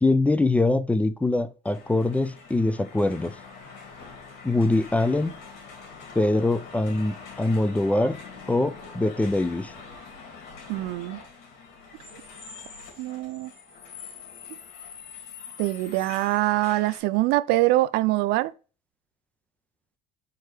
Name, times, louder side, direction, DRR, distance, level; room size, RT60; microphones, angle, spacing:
voice 1, 0.0-3.3 4.4-5.4 6.2-8.2 8.5-9.7, left 2 dB, 10° left, 0.4 m, -23 dB
sound 1, 1.6-17.0, left 5 dB, 75° left, 3.4 m, -44 dB
voice 2, 10.7-11.2 13.0-13.5 15.6-18.5, right 17 dB, 65° right, 0.5 m, -24 dB
4.7 x 4.6 x 4.8 m
cardioid pair, 130°, 18 cm